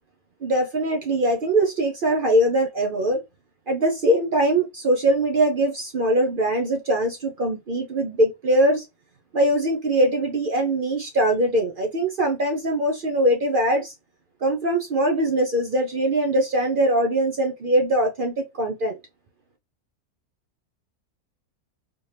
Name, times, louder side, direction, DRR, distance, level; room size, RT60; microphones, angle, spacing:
voice 1, 0.4-3.2 3.7-8.9 9.3-13.9 14.4-19.0, right 1 dB, 55° right, 0.6 m, -22 dB
4.3 x 2.8 x 3.3 m
omnidirectional pair, 1.6 m